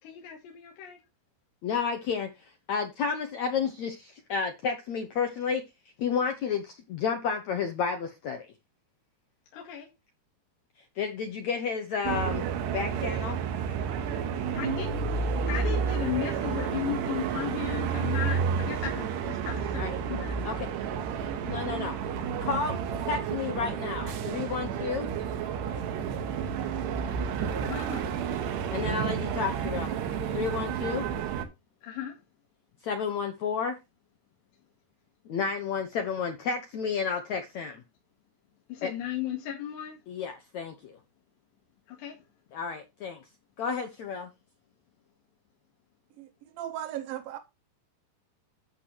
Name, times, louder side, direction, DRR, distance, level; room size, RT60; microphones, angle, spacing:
voice 1, 0.0-1.0 9.5-9.9 14.5-14.9 15.5-20.4 27.0-28.4 31.8-32.2 38.7-40.0 41.9-42.2, left 10 dB, 85° left, 4.1 m, -36 dB
voice 2, 1.6-2.3 2.7-5.6 6.0-8.4 11.0-12.4 12.7-13.4 19.8-20.0 20.4-20.7 21.4-21.9 22.4-25.1 28.7-29.9 30.3-31.1 32.8-33.7 35.3-37.8 38.8-38.9 40.1-41.0 42.5-43.2 43.6-44.3, left 6 dB, 70° left, 1.7 m, -31 dB
sound 1, 12.0-31.5, right 7 dB, 90° right, 3.5 m, -31 dB
voice 3, 46.2-47.4, right 12 dB, 70° right, 2.5 m, -37 dB
12.0 x 8.1 x 3.0 m
omnidirectional pair, 4.8 m